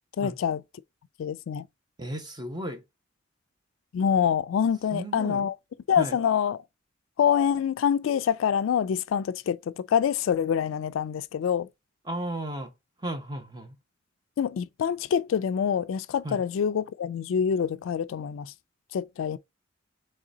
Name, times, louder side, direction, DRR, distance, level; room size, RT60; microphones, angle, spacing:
voice 1, 0.2-0.6 1.2-1.7 3.9-5.6 5.9-6.6 7.2-11.7 14.4-18.5 18.9-19.4, left 8 dB, 75° left, 0.3 m, -26 dB
voice 2, 2.0-2.8 4.9-5.5 6.0-6.2 12.1-12.7 13.0-13.8 16.2-16.4, right 1 dB, 20° right, 0.9 m, -34 dB
3.8 x 3.2 x 3.9 m
head